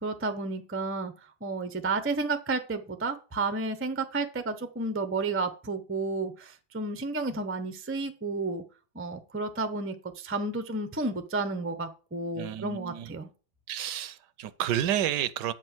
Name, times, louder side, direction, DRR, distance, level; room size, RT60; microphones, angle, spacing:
voice 1, 0.0-1.1 1.4-8.6 8.9-13.3, right 3 dB, 15° right, 0.4 m, -31 dB
voice 2, 12.3-13.1 13.7-15.5, right 11 dB, 80° right, 1.3 m, -30 dB
8.8 x 5.4 x 6.1 m
omnidirectional pair, 1.8 m